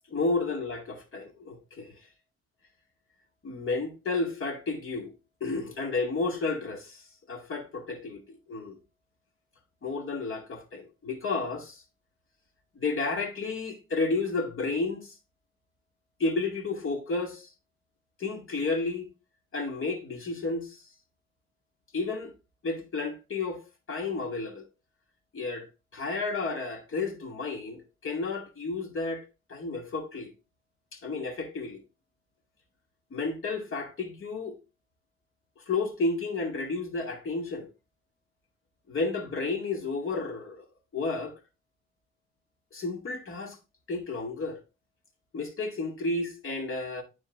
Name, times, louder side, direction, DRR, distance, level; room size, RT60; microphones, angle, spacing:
voice 1, 0.1-2.0 3.4-5.1 5.4-8.8 9.8-11.8 12.8-15.1 16.2-17.5 18.2-19.1 19.5-20.9 21.9-22.3 22.6-23.6 23.9-24.7 25.3-25.7 25.9-30.3 30.9-31.8 33.1-34.6 35.7-37.7 38.9-40.6 40.9-41.3 42.7-43.6 43.9-44.6 45.3-47.0, left 3 dB, 45° left, 2.1 m, -32 dB
9.7 x 4.5 x 2.5 m
cardioid pair, 90°, 30 cm